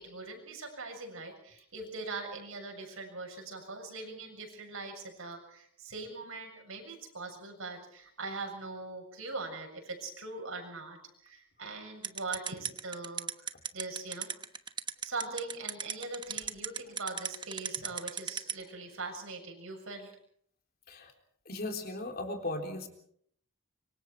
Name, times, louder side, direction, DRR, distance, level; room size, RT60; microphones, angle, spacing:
voice 1, 0.0-14.3 15.0-20.1, right 3 dB, 65° right, 3 dB, 7.2 m, -41 dB
sound 1, 12.0-18.5, right 7 dB, 20° right, 1.1 m, -34 dB
voice 2, 21.5-22.9, left 2 dB, 45° left, 3 dB, 3.7 m, -37 dB
26.5 x 24.5 x 4.7 m, 0.66 s
head